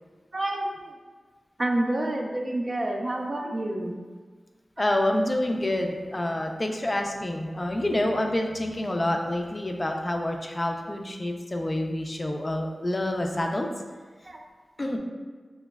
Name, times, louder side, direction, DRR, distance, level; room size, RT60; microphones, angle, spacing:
voice 1, 0.3-0.9 1.6-4.0 14.2-14.4, right 1 dB, 50° right, 1 dB, 0.4 m, -28 dB
voice 2, 4.8-13.7 14.8-15.0, left 1 dB, 35° left, 3 dB, 0.3 m, -27 dB
3.9 x 2.0 x 2.2 m, 1.5 s
cardioid pair, 50°, 0 cm